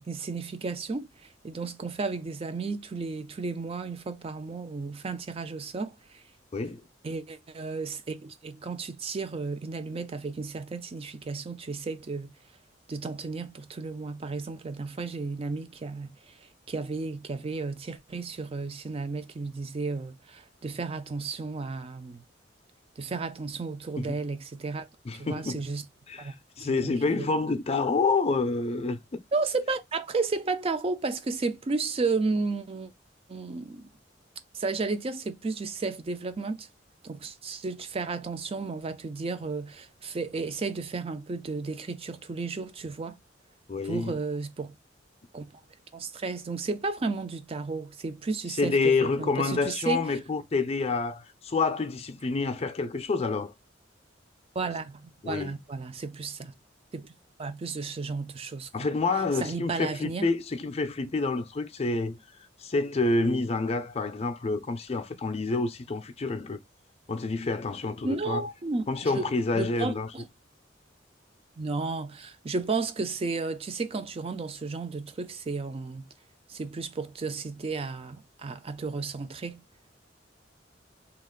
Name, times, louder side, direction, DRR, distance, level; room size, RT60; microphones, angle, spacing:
voice 1, 0.0-6.2 7.0-12.3 12.9-22.2 23.0-24.9 25.1-25.8 26.2-26.3 26.6-27.3 29.3-32.9 33.3-33.9 34.5-36.7 37.0-43.2 43.8-44.8 45.3-45.6 45.9-50.0 54.5-56.5 56.9-57.1 57.4-58.7 59.4-60.3 68.0-69.3 69.5-70.3 71.6-76.1 76.5-79.6, right 3 dB, 30° right, 0.4 m, -33 dB
voice 2, 25.1-25.7 26.1-29.2 43.7-44.2 48.6-53.5 55.2-55.6 58.7-62.2 62.6-66.6 67.1-68.4 68.9-70.1, left 3 dB, 35° left, 0.5 m, -28 dB
2.9 x 2.4 x 3.7 m
head